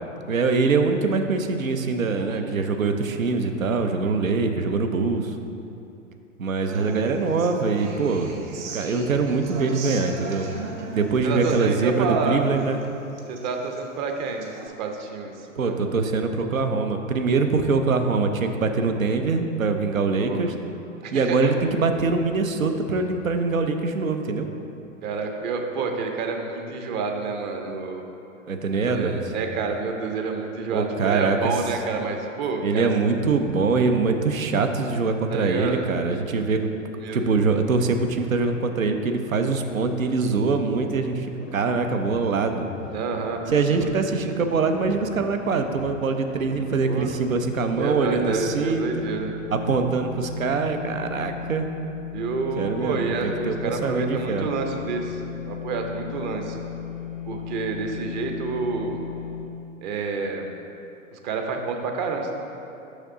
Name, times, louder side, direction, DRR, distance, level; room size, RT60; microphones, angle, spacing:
voice 1, 0.3-5.3 6.4-8.3 8.7-12.8 15.6-20.5 21.1-24.5 28.5-29.2 30.7-31.4 32.6-36.7 37.1-42.7 43.5-48.9 49.5-51.7 52.6-54.5 57.8-57.9, right 4 dB, 85° right, 6 dB, 0.6 m, -23 dB
voice 2, 2.2-2.6 4.0-4.1 11.2-12.4 13.3-15.8 20.3-20.5 21.0-21.6 25.0-28.2 28.9-32.9 35.3-35.9 36.9-37.3 42.9-44.0 46.9-47.1 47.8-49.3 52.1-55.2 55.5-56.6 57.3-59.0 59.8-60.5 61.1-62.3, right 4 dB, 35° right, 4 dB, 0.7 m, -29 dB
Human voice / Acoustic guitar, 6.7-14.7, right 4 dB, 60° right, 1.0 m, -39 dB
sound 1, 40.7-47.5, left 5 dB, 70° left, 0.6 m, -42 dB
sound 2, 44.2-59.4, left 7 dB, ahead, 0.3 m, -37 dB
6.5 x 6.1 x 3.8 m, 2.8 s
figure-of-eight pair, 110°, 39 cm